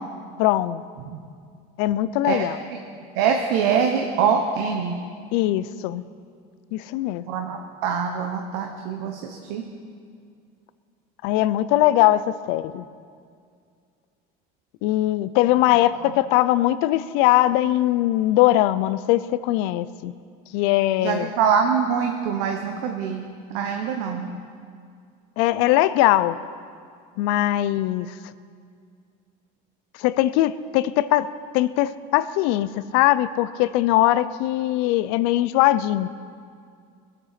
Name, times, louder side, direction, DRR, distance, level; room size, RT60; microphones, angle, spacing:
voice 1, 0.4-0.8 1.8-2.6 5.3-6.0 6.7-7.2 11.2-12.8 14.8-20.1 20.5-21.3 25.4-26.4 27.2-28.2 30.0-31.3 31.5-36.1, left 15 dB, 70° left, 16 dB, 0.5 m, -21 dB
voice 2, 3.1-4.9 7.3-9.6 16.0-16.1 21.0-23.3 23.5-24.3, right 6 dB, 75° right, 3 dB, 1.1 m, -24 dB
21.5 x 7.9 x 5.8 m, 2.2 s
cardioid pair, 175°, 18 cm